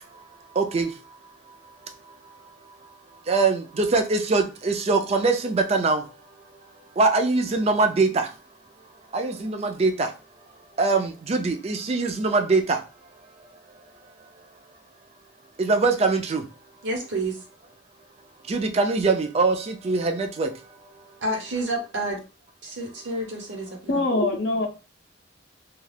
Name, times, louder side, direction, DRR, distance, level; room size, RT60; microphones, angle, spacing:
voice 1, 0.6-0.9 3.3-6.0 7.0-8.2 9.1-10.1 10.8-12.8 15.6-16.4 18.5-20.5, right 3 dB, 35° right, 0.4 m, -22 dB
voice 2, 16.8-17.4 21.2-22.2 22.6-24.0, right 1 dB, 70° right, 0.9 m, -29 dB
voice 3, 23.9-24.7, left 2 dB, 65° left, 0.5 m, -23 dB
2.3 x 2.3 x 3.2 m
head